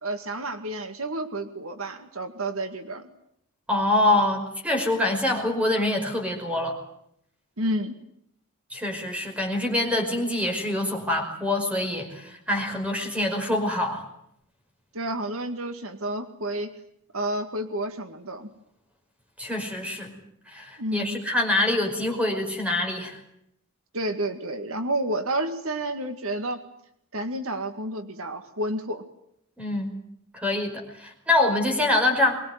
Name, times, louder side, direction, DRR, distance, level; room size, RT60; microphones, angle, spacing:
voice 1, 0.0-3.1 7.6-8.0 14.9-16.7 17.1-18.5 20.8-21.2 23.9-26.6 27.1-29.0, right 1 dB, 70° right, 8 dB, 2.0 m, -30 dB
voice 2, 3.7-6.8 8.7-14.0 19.4-20.1 20.5-23.2 29.6-29.9 30.3-32.4, left 1 dB, 5° right, 3 dB, 5.4 m, -25 dB
23.5 x 21.5 x 9.4 m, 0.74 s
head